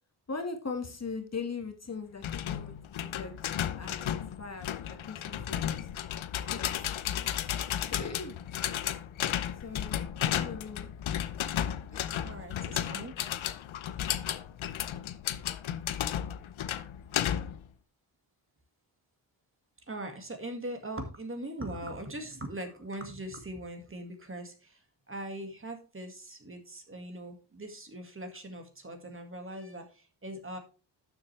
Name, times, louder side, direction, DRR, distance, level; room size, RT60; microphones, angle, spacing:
voice 1, 0.3-4.7 5.1-5.9 6.5-6.9 7.9-8.4 9.6-9.9 10.3-10.9 11.9-12.0 12.3-12.4, left 4 dB, 35° left, 5 dB, 1.8 m, -40 dB
sound 1, 2.2-17.7, left 10 dB, 85° left, 0.9 m, -33 dB
voice 2, 12.2-13.2 19.9-24.8 25.1-30.6, right 1 dB, 25° right, 5 dB, 2.0 m, -41 dB
12.0 x 7.2 x 3.3 m, 0.32 s
wide cardioid pair, 130°, 46 cm